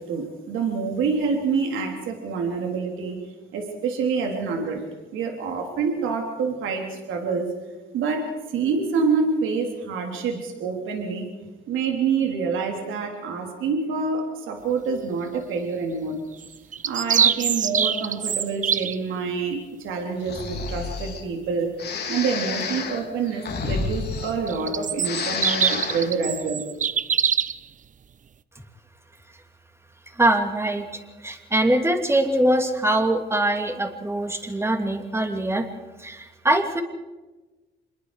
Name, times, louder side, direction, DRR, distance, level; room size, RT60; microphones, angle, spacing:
voice 1, 0.0-3.2 3.5-4.8 5.1-7.5 7.9-11.3 11.7-16.2 16.8-21.7 22.1-26.6, right 5 dB, 85° right, 2 dB, 3.4 m, -27 dB
sound 1, 16.4-19.0 24.5-27.6, right 7 dB, 40° right, 0.7 m, -24 dB
Breathing, 20.2-21.2 21.8-24.7 25.0-26.1, left 5 dB, 55° left, 3.0 m, -30 dB
voice 2, 30.1-35.7 36.0-36.8, right 1 dB, 15° right, 4 dB, 2.9 m, -23 dB
26.5 x 21.5 x 4.9 m, 1.2 s
cardioid pair, 90°, 20 cm